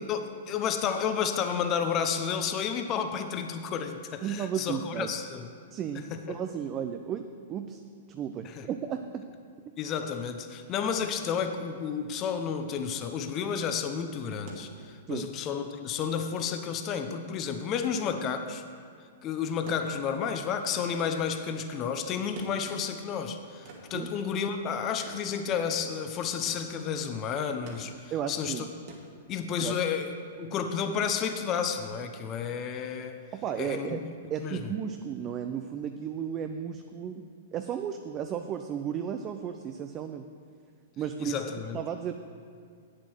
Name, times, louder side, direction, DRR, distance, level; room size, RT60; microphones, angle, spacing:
voice 1, 0.1-5.5 6.1-6.4 8.4-8.7 9.8-18.6 19.2-28.6 29.3-33.2 33.6-34.0 34.4-34.7 41.2-41.8, left 7 dB, 35° left, 7 dB, 0.8 m, -31 dB
voice 2, 4.2-5.2 5.7-7.8 8.1-9.3 15.1-15.3 23.9-24.1 28.1-28.6 29.6-29.7 33.3-34.0 34.3-40.3 41.0-41.4 41.7-42.1, right 8 dB, 30° right, 7 dB, 0.5 m, -34 dB
sound 1, 14.5-29.7 31.0-31.1, right 2 dB, 55° right, 2.1 m, -51 dB
8.4 x 7.4 x 6.4 m, 2.2 s
hypercardioid pair, 120°, 0 cm